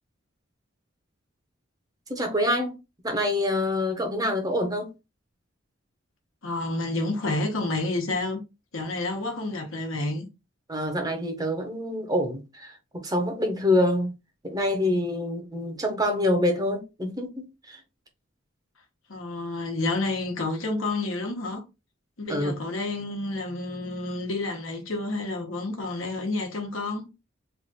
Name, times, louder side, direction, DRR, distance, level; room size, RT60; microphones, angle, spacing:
voice 1, 2.1-2.8 3.0-4.9 10.7-14.1 14.4-17.8 22.3-22.6, left 1 dB, 20° right, 0.7 m, -26 dB
voice 2, 6.4-8.4 8.7-10.2 19.1-21.6 22.2-27.1, left 2 dB, 80° left, 1.1 m, -29 dB
3.2 x 2.5 x 4.0 m
head